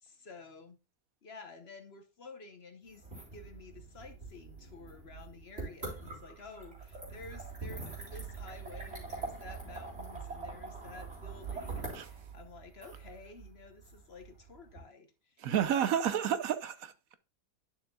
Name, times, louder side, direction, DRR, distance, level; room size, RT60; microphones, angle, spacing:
voice 1, 0.0-0.8 1.2-3.0 3.3-15.7, left 3 dB, 50° left, 1.0 m, -51 dB
sound 1, 2.9-14.8, right 4 dB, 50° right, 4.0 m, -44 dB
voice 2, 15.4-17.2, right 9 dB, 70° right, 1.1 m, -30 dB
11.5 x 6.5 x 2.3 m
omnidirectional pair, 1.6 m